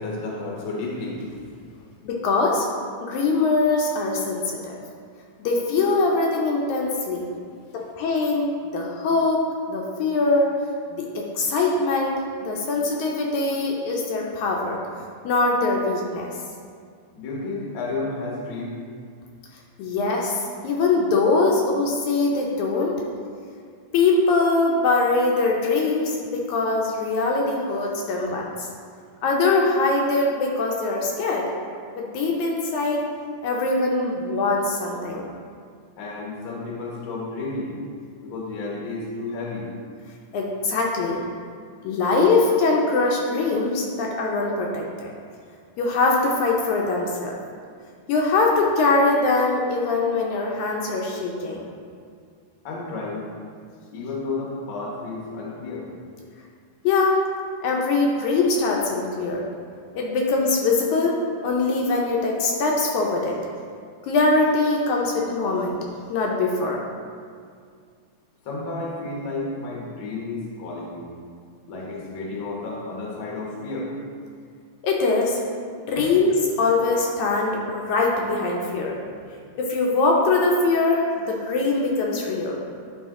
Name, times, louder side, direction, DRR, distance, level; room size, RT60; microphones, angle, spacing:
voice 1, 0.0-1.4 17.1-18.8 36.0-37.7 38.2-39.7 52.6-53.2 53.9-55.9 68.4-71.1 71.7-73.9 76.0-76.1, left 3 dB, 55° left, -3 dB, 1.5 m, -31 dB
voice 2, 2.0-2.7 3.0-4.8 5.4-7.2 7.7-9.4 9.7-10.5 11.0-12.2 12.4-14.8 15.2-16.3 19.8-20.4 20.6-23.0 23.9-28.7 29.2-31.5 31.9-33.0 33.4-35.3 40.3-41.2 41.8-45.1 45.8-47.4 48.1-51.6 56.8-57.2 57.6-59.4 60.0-61.2 61.4-63.4 64.1-65.8 66.1-66.8 74.8-75.4 75.9-79.0 79.6-82.6, left 3 dB, 75° left, -1 dB, 2.0 m, -22 dB
10.5 x 3.7 x 3.7 m, 2.1 s
omnidirectional pair, 3.5 m